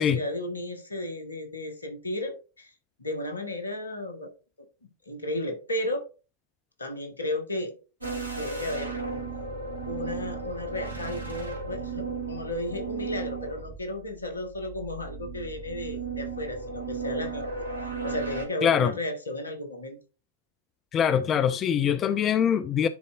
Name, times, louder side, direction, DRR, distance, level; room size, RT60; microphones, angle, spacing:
voice 1, 0.0-2.7 3.0-4.3 5.1-6.0 6.8-7.7 8.4-9.0 9.8-17.5 17.8-20.0, left 1 dB, 75° left, 1.4 m, -34 dB
sound 1, 8.0-18.4, right 4 dB, 80° right, 2.1 m, -35 dB
voice 2, 18.6-18.9 20.9-22.9, left 8 dB, 30° left, 0.4 m, -23 dB
10.5 x 4.2 x 2.4 m
figure-of-eight pair, 90°, 0 cm